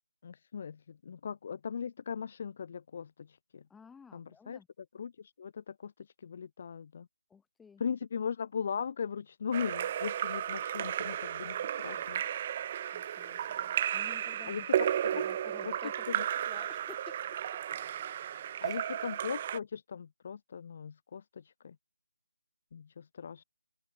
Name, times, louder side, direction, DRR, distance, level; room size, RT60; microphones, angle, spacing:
voice 1, 0.2-3.6 4.1-4.6 4.9-7.1 7.8-12.2 14.5-15.2 15.6-15.7 16.1-16.2 18.6-21.8 22.7-23.4, left 6 dB, 30° left, 0.8 m, -39 dB
voice 2, 3.7-4.7 7.3-7.8 11.4-11.6 11.9-12.0 12.9-14.8 15.1-17.2 18.6-18.8, left 6 dB, 5° left, 1.4 m, -54 dB
Splash splatter / Drip / Trickle dribble, 9.5-19.6, right 10 dB, 20° right, 0.5 m, -34 dB
open air
figure-of-eight pair, 170°, 0 cm